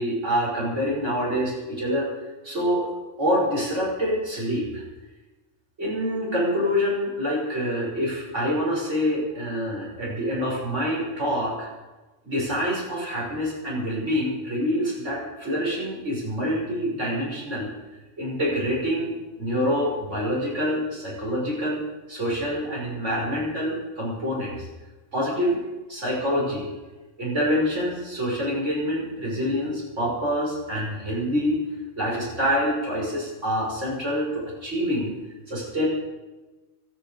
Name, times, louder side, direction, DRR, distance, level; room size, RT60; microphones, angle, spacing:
voice 1, 0.0-2.1 2.4-2.9 3.2-4.8 5.8-11.7 12.2-17.7 18.2-21.8 22.1-24.6 25.1-25.6 25.9-26.7 27.2-31.6 32.0-35.1 35.5-35.9, equal, 65° right, -4 dB, 6.4 m, -26 dB
26.0 x 10.5 x 5.3 m, 1.2 s
omnidirectional pair, 1.3 m